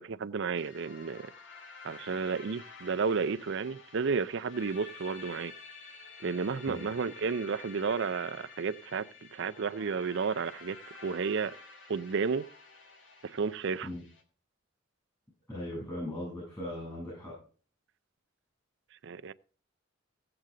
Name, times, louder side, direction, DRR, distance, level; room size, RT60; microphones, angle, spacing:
voice 1, 0.0-1.3 1.8-5.5 6.2-11.6 11.9-12.5 13.2-13.9 19.0-19.3, right 5 dB, 65° right, 0.5 m, -32 dB
sound 1, 0.5-14.2, left 4 dB, 70° left, 2.0 m, -50 dB
voice 2, 15.5-17.3, left 1 dB, 20° left, 7.4 m, -38 dB
16.0 x 7.8 x 3.8 m
head